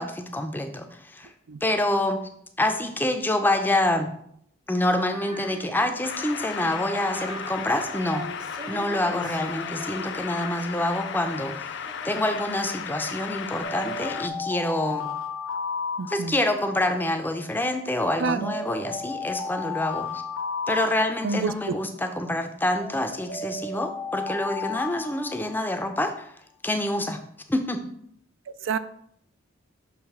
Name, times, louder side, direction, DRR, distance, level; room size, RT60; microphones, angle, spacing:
voice 1, 0.0-1.3 1.6-2.3 2.6-4.1 4.7-8.2 8.7-15.1 16.1-20.2 20.7-26.3 26.6-27.2 27.5-27.8, left 1 dB, 10° left, 6 dB, 0.5 m, -27 dB
Female singing, 5.1-12.5, right 1 dB, 20° right, 0.7 m, -42 dB
sound 1, 6.0-14.3, left 7 dB, 60° left, 0.4 m, -35 dB
sound 2, 13.6-16.8 17.9-21.7 22.8-26.0, left 4 dB, 80° left, 1.1 m, -34 dB
voice 2, 16.0-16.4 18.2-18.5 21.2-21.7 28.6-28.8, right 4 dB, 70° right, 12 dB, 0.4 m, -27 dB
6.5 x 3.1 x 5.9 m, 0.71 s
head